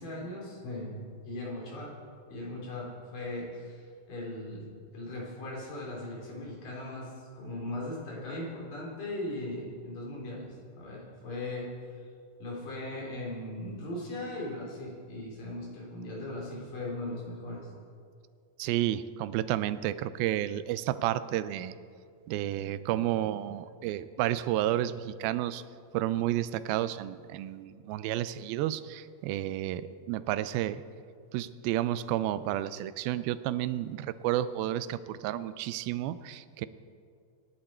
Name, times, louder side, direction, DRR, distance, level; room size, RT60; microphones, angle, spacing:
voice 1, 0.0-1.9 2.3-4.7 4.9-7.1 7.4-11.7 12.4-17.7, left 1 dB, 65° left, -3 dB, 5.2 m, -38 dB
voice 2, 18.6-21.8 22.3-25.6 25.9-30.8 31.3-36.7, right 13 dB, 85° right, 14 dB, 2.4 m, -31 dB
25.5 x 11.0 x 4.4 m, 2.3 s
omnidirectional pair, 4.2 m